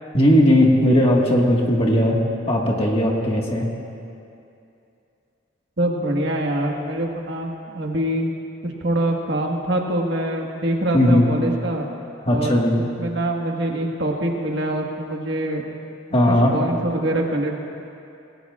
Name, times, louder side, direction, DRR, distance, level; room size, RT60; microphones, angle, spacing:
voice 1, 0.1-2.2 2.5-3.7 10.9-11.3 12.2-12.8 16.1-16.6, left 1 dB, 30° left, -1 dB, 1.7 m, -17 dB
voice 2, 5.8-8.3 8.6-11.9 12.3-15.6 16.5-17.5, right 1 dB, 55° right, 0 dB, 1.6 m, -24 dB
25.5 x 19.0 x 2.4 m, 2.6 s
head